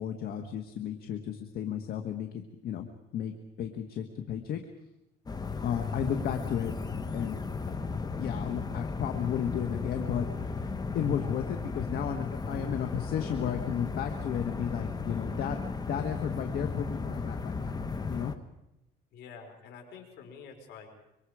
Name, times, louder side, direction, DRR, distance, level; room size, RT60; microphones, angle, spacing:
voice 1, 0.0-4.6 5.6-6.7 7.1-7.4 7.7-7.8 8.1-15.6 15.9-17.8 18.1-18.3, left 8 dB, 65° left, 6 dB, 1.6 m, -33 dB
sound 1, 5.3-18.4, left 4 dB, 25° left, 1.3 m, -35 dB
voice 2, 19.1-21.0, left 6 dB, 80° left, 4 dB, 4.8 m, -48 dB
25.5 x 24.0 x 5.0 m, 0.87 s
cardioid pair, 110°, 17 cm